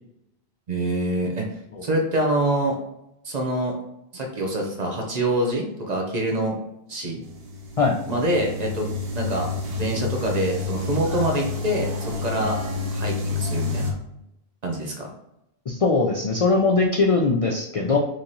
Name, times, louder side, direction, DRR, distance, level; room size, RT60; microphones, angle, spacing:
voice 1, 0.7-1.5 1.8-2.7 3.2-3.8 4.1-6.6 6.9-7.2 8.1-8.9 9.1-9.5 9.8-12.6 12.9-13.9 14.6-15.1, right 1 dB, 45° right, 1 dB, 0.8 m, -25 dB
sound 1, 7.2-13.9, left 4 dB, 70° right, 1.0 m, -29 dB
voice 2, 15.7-18.0, left 3 dB, 55° left, -1 dB, 0.4 m, -20 dB
3.2 x 2.9 x 3.9 m, 0.82 s
omnidirectional pair, 1.1 m